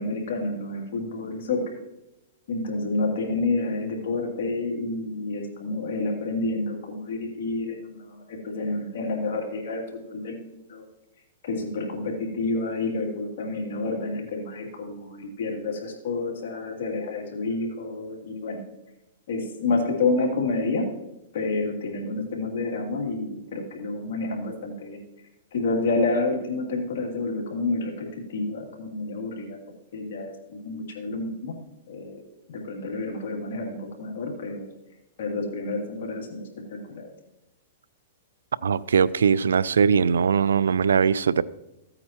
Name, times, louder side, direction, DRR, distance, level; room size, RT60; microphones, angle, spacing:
voice 1, 0.0-1.6 2.5-10.8 11.4-18.6 19.3-20.9 21.3-25.0 25.5-29.6 29.9-31.5 31.9-32.2 32.5-34.7 35.2-37.1, left 3 dB, 70° left, 2.7 m, -29 dB
voice 2, 38.6-41.4, right 6 dB, 90° right, 0.4 m, -21 dB
15.0 x 8.8 x 3.0 m
hypercardioid pair, 135°, 0 cm